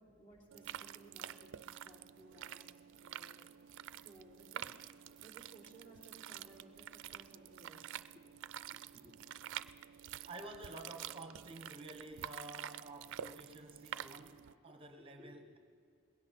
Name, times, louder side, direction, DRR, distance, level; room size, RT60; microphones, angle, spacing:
voice 1, 0.0-2.7 3.0-3.6 4.0-4.7 5.2-7.9 8.8-9.2 14.5-14.6 15.0-15.6, right 1 dB, 40° left, -2 dB, 3.4 m, -60 dB
sound 1, 0.5-14.5, right 10 dB, 60° right, 0.4 m, -48 dB
voice 2, 10.2-15.6, right 2 dB, 25° right, 5 dB, 0.8 m, -51 dB
20.5 x 16.5 x 4.2 m, 2.4 s
head